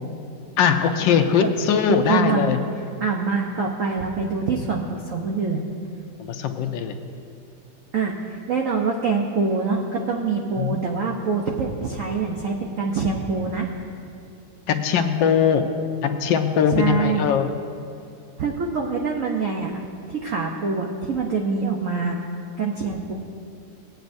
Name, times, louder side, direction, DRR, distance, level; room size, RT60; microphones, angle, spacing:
voice 1, 0.6-2.6 6.2-7.0 10.6-10.8 14.7-15.7 16.0-17.5, left 7 dB, 75° left, 6 dB, 1.2 m, -20 dB
voice 2, 2.1-2.5 3.0-5.6 7.9-13.7 16.7-17.3 18.4-19.8 20.1-22.3 22.6-23.1, right 4 dB, 75° right, 0 dB, 0.7 m, -25 dB
18.5 x 9.2 x 2.6 m, 2.5 s
omnidirectional pair, 2.4 m